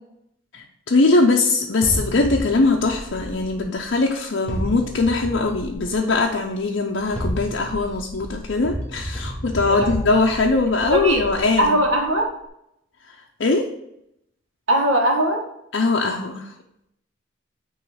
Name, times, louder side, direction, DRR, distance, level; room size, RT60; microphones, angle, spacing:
voice 1, 0.5-11.7 13.1-13.2 13.4-13.7 15.7-16.5, left 3 dB, 60° left, 0 dB, 0.6 m, -21 dB
sound 1, 1.8-4.0 4.5-6.3 7.0-12.1, equal, 5° left, 1.2 m, -32 dB
voice 2, 10.7-11.2 11.6-12.3 14.7-15.4, equal, 85° right, 0 dB, 1.6 m, -20 dB
9.0 x 3.1 x 4.8 m, 0.79 s
head